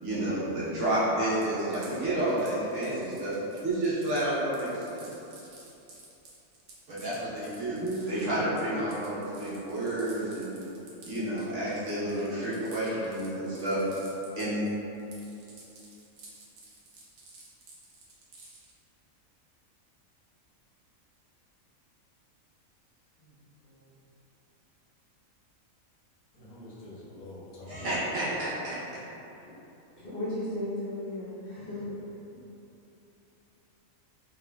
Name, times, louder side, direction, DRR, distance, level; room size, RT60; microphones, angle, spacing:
voice 1, 0.0-3.3 3.6-5.0 6.9-10.6 11.0-13.8 14.4-14.7 27.7-28.8, right 1 dB, 60° right, -10 dB, 1.3 m, -30 dB
sound 1, 1.3-14.7 14.9-18.7, right 3 dB, 85° right, 1.2 m, -52 dB
voice 2, 7.7-8.6 23.2-23.3 23.6-23.8 29.4-29.5 30.0-31.9, left 1 dB, 45° left, -10 dB, 1.1 m, -35 dB
voice 3, 26.3-27.9, left 2 dB, 80° left, -9 dB, 1.4 m, -46 dB
3.8 x 3.7 x 2.2 m, 3.0 s
omnidirectional pair, 1.4 m